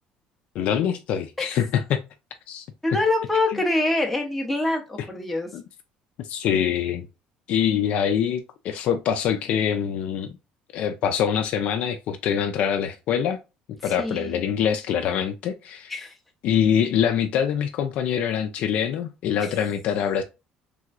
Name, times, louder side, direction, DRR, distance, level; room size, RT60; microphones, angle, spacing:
voice 1, 0.5-2.0 2.5-2.7 5.5-5.6 6.3-7.1 7.5-10.3 10.7-13.4 13.8-15.9 16.4-20.2, left 8 dB, 55° left, 0.4 m, -24 dB
voice 2, 2.8-5.5 13.8-14.4 15.9-16.1, left 2 dB, 5° left, 0.6 m, -25 dB
3.4 x 3.0 x 2.3 m
cardioid pair, 170°, 3 cm